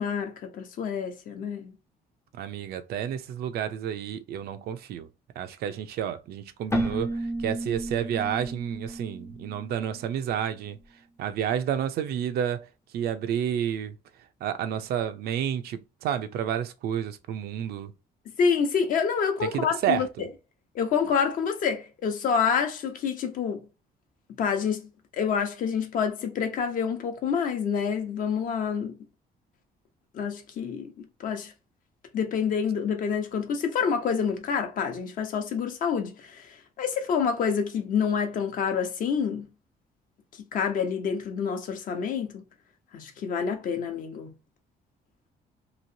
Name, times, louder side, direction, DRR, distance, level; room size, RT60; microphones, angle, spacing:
voice 1, 0.0-1.7 18.4-20.1 20.7-23.6 24.4-29.0 30.1-31.5 32.1-39.5 40.5-42.4 42.9-44.3, left 6 dB, 55° left, 0.8 m, -27 dB
voice 2, 2.3-5.1 5.4-10.8 11.2-12.7 12.9-14.0 14.4-17.9 19.4-20.3, right 9 dB, 75° right, 0.5 m, -30 dB
Keyboard (musical), 6.7-10.3, right 1 dB, 15° left, 0.5 m, -33 dB
3.0 x 2.8 x 2.6 m
cardioid pair, 160°, 16 cm